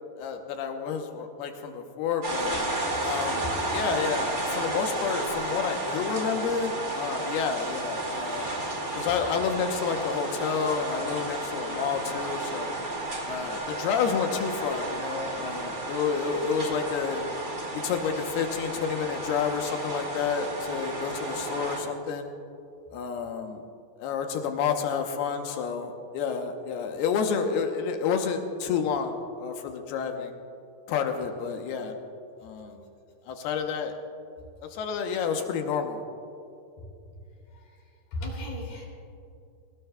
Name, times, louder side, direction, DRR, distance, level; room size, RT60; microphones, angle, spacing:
voice 1, 0.2-2.5 3.0-3.4 3.7-8.5 9.0-12.8 13.3-17.3 17.8-22.3 22.9-23.6 24.0-30.3 30.9-32.0 32.4-32.8 33.3-33.9 34.6-36.0, left 6 dB, 75° left, 4 dB, 2.7 m, -29 dB
sound 1, 2.2-21.8, right 2 dB, 30° right, 1.7 m, -32 dB
voice 2, 38.1-38.9, left 1 dB, 60° left, -2 dB, 4.5 m, -36 dB
21.5 x 19.0 x 2.3 m, 2.7 s
omnidirectional pair, 5.0 m